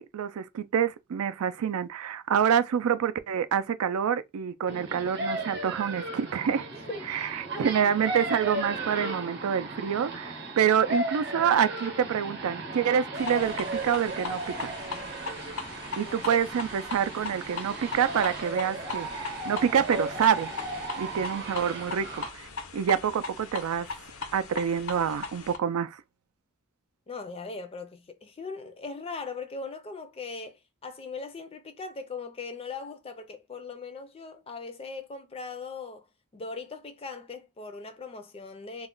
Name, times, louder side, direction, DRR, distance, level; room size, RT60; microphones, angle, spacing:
voice 1, 0.0-6.7 7.1-14.7 16.0-20.5 21.0-23.9 24.3-26.0, right 8 dB, 90° right, 0.4 m, -27 dB
voice 2, 4.7-5.5 6.7-7.1 7.5-7.8 11.1-11.5 16.0-16.4 27.1-36.1 36.3-38.9, left 4 dB, 25° left, 0.4 m, -40 dB
sound 1, 4.7-22.3, right 2 dB, 50° right, 0.8 m, -35 dB
sound 2, 13.1-25.6, left 4 dB, 75° left, 0.6 m, -39 dB
2.3 x 2.1 x 3.7 m
head